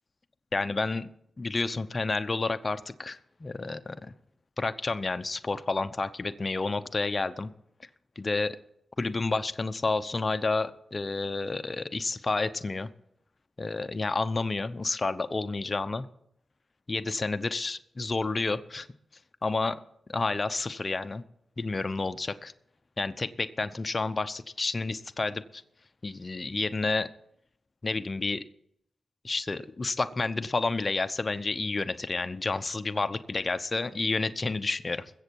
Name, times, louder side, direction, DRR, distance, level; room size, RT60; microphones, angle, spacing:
voice 1, 0.5-1.1 1.4-4.1 4.6-7.5 8.2-8.6 9.0-12.9 13.6-16.1 16.9-18.9 19.4-19.8 20.1-21.2 21.6-22.5 23.0-25.6 26.0-27.1 27.8-28.4 29.2-35.1, left 3 dB, 40° left, 11 dB, 0.8 m, -30 dB
21.5 x 8.0 x 4.7 m, 0.73 s
cardioid pair, 60°, 0 cm